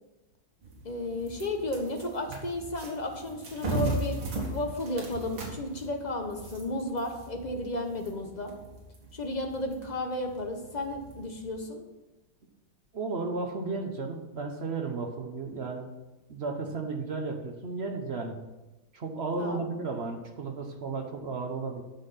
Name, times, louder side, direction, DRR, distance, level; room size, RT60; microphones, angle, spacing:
sound 1, 0.6-11.5, right 2 dB, 75° right, 2.7 m, -38 dB
voice 1, 0.8-4.2 4.5-8.5 9.1-11.8 19.4-19.6, left 2 dB, 30° left, 3 dB, 0.8 m, -33 dB
voice 2, 12.9-15.9 16.3-18.4 18.9-21.8, right 3 dB, 45° right, 4 dB, 0.8 m, -34 dB
10.0 x 6.3 x 5.7 m, 1.1 s
omnidirectional pair, 2.2 m